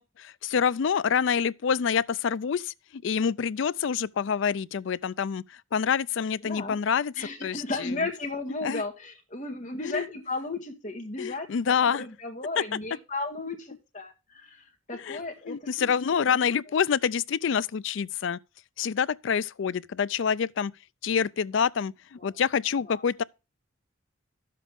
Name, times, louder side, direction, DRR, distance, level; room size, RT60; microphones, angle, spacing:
voice 1, 0.0-8.0 8.6-8.8 9.8-10.1 11.2-12.1 12.6-12.8 14.9-15.2 15.5-18.4 18.8-20.7 21.0-23.2, left 7 dB, 65° left, 0.4 m, -27 dB
voice 2, 6.4-6.8 7.2-14.6 14.9-16.2 22.2-22.3 22.8-23.0, left 2 dB, 35° left, 2.0 m, -35 dB
11.5 x 7.6 x 3.5 m
head